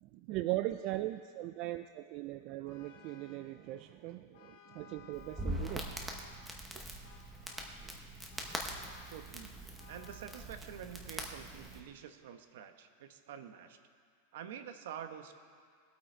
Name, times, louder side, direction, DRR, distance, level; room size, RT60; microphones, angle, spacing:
voice 1, 0.0-5.8 6.8-6.9, right 16 dB, 35° right, 9 dB, 0.3 m, -39 dB
Vehicle horn car horn honking, 2.7-3.5 4.3-6.5 7.0-7.9 8.3-9.2 9.8-10.4, left 6 dB, 50° left, 1.3 m, -58 dB
Crackle, 5.1-11.8, right 1 dB, 5° right, 0.9 m, -43 dB
voice 2, 9.1-9.6 9.9-13.8 14.3-15.3, right 9 dB, 60° right, 8 dB, 1.0 m, -47 dB
20.5 x 8.5 x 4.4 m, 2.1 s
supercardioid pair, 175°, 0 cm